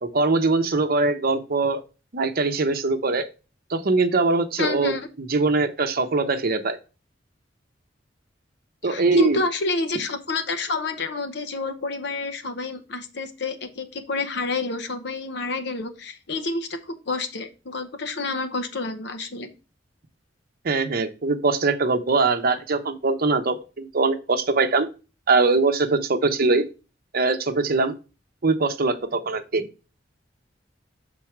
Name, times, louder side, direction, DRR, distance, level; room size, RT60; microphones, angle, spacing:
voice 1, 0.0-1.8 2.1-3.2 3.7-4.9 5.3-6.8 8.8-9.4 20.6-24.9 25.3-26.6 27.1-27.9 28.4-29.7, right 3 dB, 50° right, 8 dB, 0.8 m, -22 dB
voice 2, 4.6-5.1 8.8-19.5, left 3 dB, 65° left, 8 dB, 0.8 m, -29 dB
6.1 x 4.0 x 4.5 m, 0.31 s
head